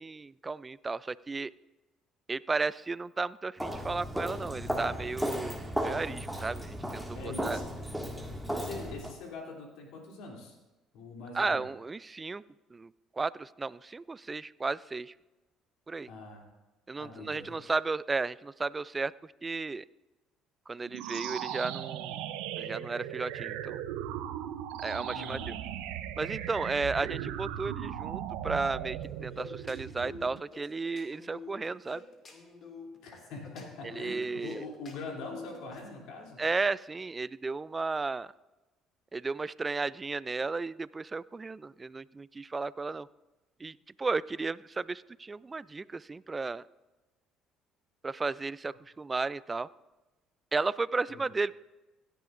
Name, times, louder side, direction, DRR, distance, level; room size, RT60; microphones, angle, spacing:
voice 1, 0.0-1.5 2.3-7.6 11.3-12.4 12.7-15.1 15.9-16.1 16.9-19.8 20.7-22.2 22.6-23.8 24.8-25.5 26.2-32.0 33.8-34.6 36.4-38.3 39.1-43.1 43.6-46.6 48.0-49.7 50.5-51.5, right 3 dB, 25° right, 20 dB, 0.3 m, -34 dB
Walk footsteps, 3.6-9.1, equal, ahead, 1.9 m, -35 dB
voice 2, 7.1-8.0 8.5-10.6 10.9-11.6 16.1-16.4 17.0-17.6 25.1-25.5 33.0-36.4 51.1-51.2, left 3 dB, 70° left, 0 dB, 2.9 m, -43 dB
sound 1, 20.9-30.4, right 11 dB, 80° right, 0.6 m, -38 dB
sound 2, 29.0-35.9, left 4 dB, 45° left, 2.3 m, -48 dB
16.5 x 10.5 x 2.5 m, 1.1 s
hypercardioid pair, 65°, 0 cm